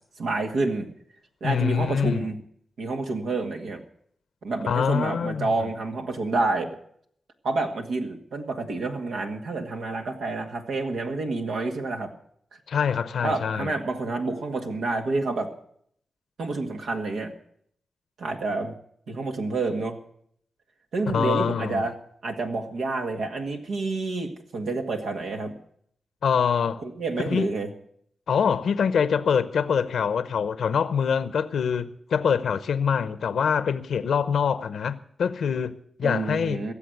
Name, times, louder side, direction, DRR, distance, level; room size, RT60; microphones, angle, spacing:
voice 1, 0.2-0.9 1.4-2.4 2.8-3.8 4.4-6.8 7.4-12.1 13.2-15.5 16.4-17.3 18.2-18.7 19.1-20.0 20.9-25.5 26.8-27.7 36.0-36.7, right 3 dB, 85° right, 1.9 m, -28 dB
voice 2, 1.4-2.2 4.7-5.7 12.7-13.7 21.1-21.8 26.2-26.8 27.2-27.5 28.3-36.6, left 7 dB, 85° left, 0.7 m, -25 dB
16.5 x 7.4 x 9.4 m
cardioid pair, 55°, 0 cm